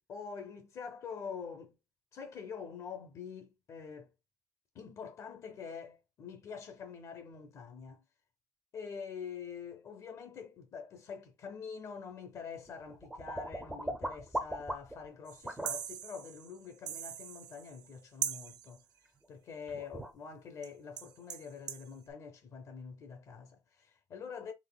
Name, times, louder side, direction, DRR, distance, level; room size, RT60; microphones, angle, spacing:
voice 1, 0.0-1.8 2.1-4.1 4.7-8.0 8.7-18.9 19.3-24.5, left 6 dB, 40° left, 0.6 m, -45 dB
sound 1, 12.4-15.1 15.4-15.7 19.2-19.3 19.7-20.1, right 1 dB, 5° right, 0.5 m, -39 dB
sound 2, 15.3-18.0 18.2-18.8 20.6-20.7 21.0-21.9, right 9 dB, 55° right, 0.6 m, -41 dB
4.0 x 3.5 x 2.2 m
cardioid pair, 175°, 8 cm